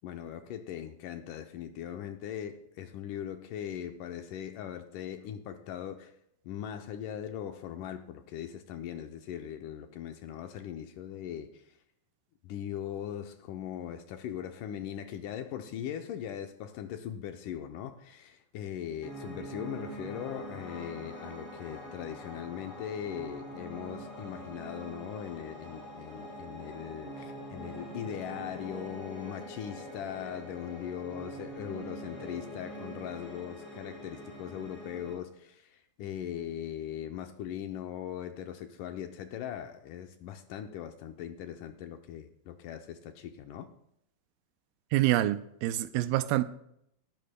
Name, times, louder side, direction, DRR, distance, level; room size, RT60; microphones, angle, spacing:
voice 1, 0.0-6.1 6.5-11.8 12.4-43.7, left 10 dB, 75° left, 2.0 m, -40 dB
Piano, 19.0-35.1, equal, 40° left, 5.2 m, -44 dB
voice 2, 44.9-46.4, right 15 dB, 80° right, 2.2 m, -26 dB
18.5 x 12.5 x 2.2 m
omnidirectional pair, 4.2 m